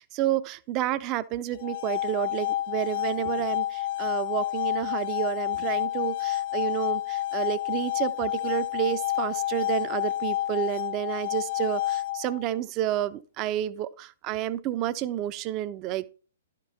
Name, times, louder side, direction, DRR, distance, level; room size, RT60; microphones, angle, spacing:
voice 1, 0.0-16.1, right 13 dB, 30° right, 0.5 m, -30 dB
sound 1, 1.5-12.5, left 14 dB, 40° left, 0.6 m, -29 dB
12.0 x 5.2 x 4.1 m
figure-of-eight pair, 115°, 0 cm